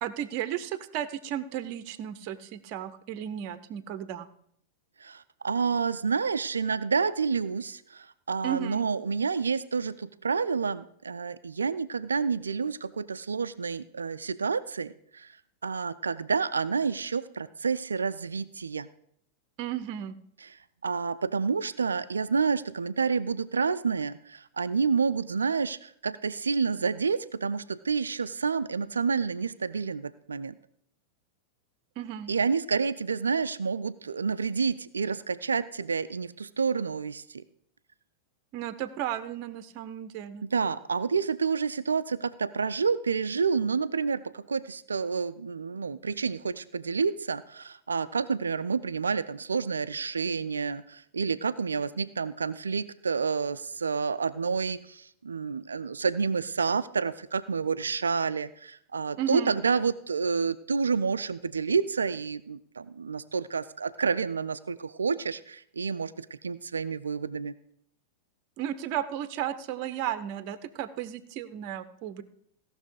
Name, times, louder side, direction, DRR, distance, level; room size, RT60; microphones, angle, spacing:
voice 1, 0.0-4.3 8.4-8.8 19.6-20.2 32.0-32.3 38.5-40.4 59.2-59.6 68.6-72.2, right 10 dB, 45° right, 12 dB, 0.7 m, -34 dB
voice 2, 5.0-15.3 15.6-18.9 20.4-20.5 20.8-30.6 32.3-37.4 40.4-67.5, right 5 dB, 80° right, 12 dB, 0.4 m, -29 dB
16.0 x 6.1 x 4.8 m, 0.67 s
figure-of-eight pair, 95°, 0 cm